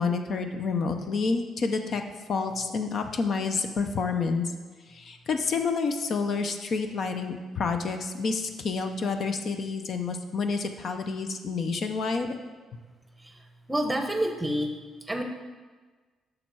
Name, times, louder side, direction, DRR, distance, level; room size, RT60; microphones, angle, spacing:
voice 1, 0.0-2.0 2.3-4.5 4.9-12.4, left 4 dB, 50° left, 6 dB, 0.6 m, -29 dB
voice 2, 13.2-14.7 15.0-15.2, right 1 dB, 10° right, 4 dB, 0.9 m, -29 dB
8.8 x 6.3 x 4.7 m, 1.3 s
cardioid pair, 130°, 0 cm